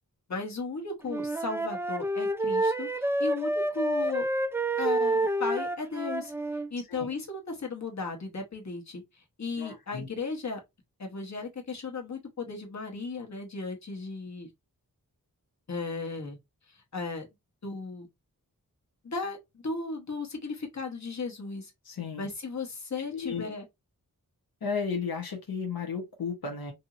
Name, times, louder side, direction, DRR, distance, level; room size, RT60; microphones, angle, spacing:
voice 1, 0.3-4.3 4.8-6.3 6.7-10.6 11.0-14.5 15.7-16.4 16.7-17.3 17.6-18.1 19.0-21.7 22.2-23.7, left 4 dB, 50° left, 1.1 m, -36 dB
Wind instrument woodwind instrument, 1.0-6.7, right 1 dB, 10° right, 0.3 m, -28 dB
voice 2, 9.6-10.1 21.8-22.3 23.1-23.5 24.6-26.7, left 5 dB, 90° left, 0.8 m, -34 dB
2.8 x 2.7 x 2.4 m
wide cardioid pair, 60°, 35 cm